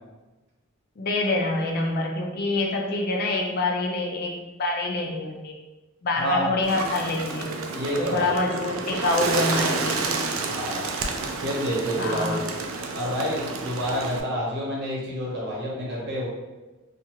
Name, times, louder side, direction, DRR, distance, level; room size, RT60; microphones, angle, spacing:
voice 1, 1.0-5.5 6.0-7.5 8.0-10.1 12.0-12.4, left 2 dB, 45° left, 1 dB, 0.4 m, -26 dB
voice 2, 6.2-6.5 7.7-8.3 10.5-10.8 11.4-12.4 12.9-16.3, equal, 55° right, -4 dB, 0.8 m, -28 dB
Bird, 6.6-14.2, right 4 dB, 70° right, 0.3 m, -30 dB
2.5 x 2.4 x 2.8 m, 1.1 s
head